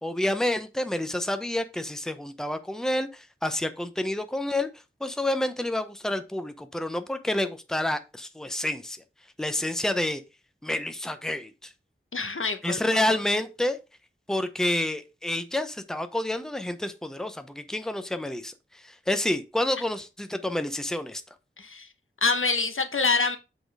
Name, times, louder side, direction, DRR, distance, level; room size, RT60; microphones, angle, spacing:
voice 1, 0.0-4.7 5.0-9.0 9.4-10.2 10.6-11.7 12.6-13.8 14.3-21.2, left 1 dB, 5° left, 0.8 m, -29 dB
voice 2, 12.1-13.2 21.6-21.9 22.2-23.4, left 4 dB, 75° left, 1.0 m, -26 dB
7.7 x 4.0 x 4.7 m
wide cardioid pair, 55°, 21 cm